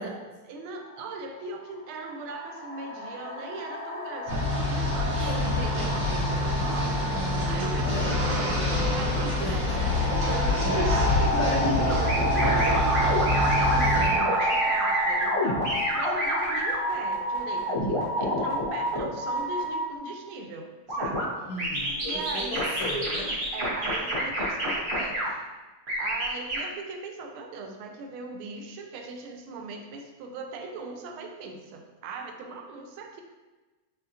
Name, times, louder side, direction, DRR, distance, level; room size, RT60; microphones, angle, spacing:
voice 1, 0.0-21.4 22.0-22.6 23.5-25.4 26.0-33.2, right 3 dB, 75° right, 3 dB, 1.4 m, -39 dB
sound 1, 0.9-1.0 1.9-18.6, equal, 60° left, 0.5 m, -31 dB
sound 2, 4.3-14.1, left 1 dB, 60° right, 2.0 m, -26 dB
voice 2, 5.3-5.6 7.8-8.2 9.4-9.9 14.0-14.3 21.5-23.4, left 1 dB, 85° left, -4 dB, 1.7 m, -36 dB
sound 3, 11.9-19.8 20.9-21.3 21.6-25.3 25.9-26.6, equal, 35° right, 1.1 m, -28 dB
5.1 x 3.6 x 2.7 m, 1.2 s
omnidirectional pair, 2.4 m